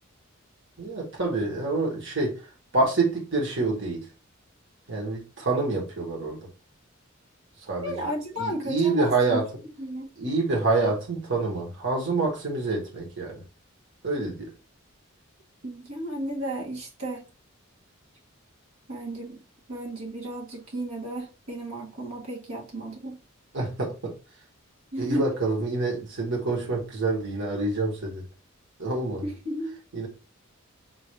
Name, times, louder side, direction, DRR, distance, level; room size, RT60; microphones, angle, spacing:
voice 1, 0.8-2.3 2.7-4.0 4.9-6.4 7.7-8.1 8.4-9.5 10.2-13.4 14.0-14.5 23.5-24.1 25.0-28.2 28.8-29.3 29.9-30.1, right 3 dB, 60° right, 1.4 m, -27 dB
voice 2, 7.8-9.4 9.8-10.1 15.6-17.3 18.9-19.4 19.7-23.2 24.9-25.3 29.2-29.7, right 1 dB, 85° right, 1.5 m, -33 dB
6.0 x 2.5 x 3.1 m
head